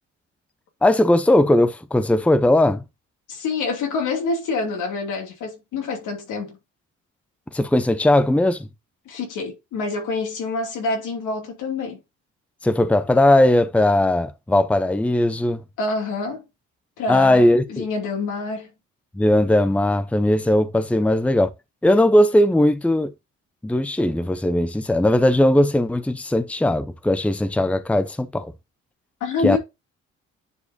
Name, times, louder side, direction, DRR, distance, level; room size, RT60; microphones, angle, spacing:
voice 1, 0.8-2.8 7.5-8.7 12.6-15.6 17.1-17.9 19.2-21.5 21.8-23.1 23.6-28.5 29.4-29.6, left 1 dB, 5° left, 0.7 m, -18 dB
voice 2, 3.3-6.6 9.1-12.0 15.8-16.4 17.0-18.7 29.2-29.6, left 4 dB, 85° left, 2.8 m, -27 dB
9.7 x 4.7 x 2.7 m
cardioid pair, 90°, 30 cm